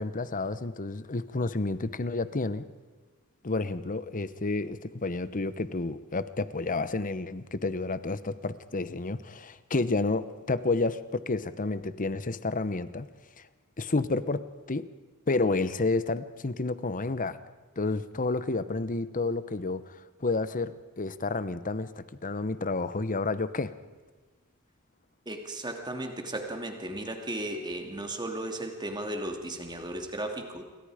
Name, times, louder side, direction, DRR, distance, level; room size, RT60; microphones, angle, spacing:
voice 1, 0.0-2.7 3.4-13.1 13.8-14.4 14.7-14.8 15.3-17.4 17.8-23.7, left 3 dB, 35° left, 14 dB, 0.9 m, -30 dB
voice 2, 25.3-30.6, right 1 dB, 20° right, 4 dB, 2.7 m, -35 dB
28.0 x 24.0 x 5.0 m, 1.4 s
head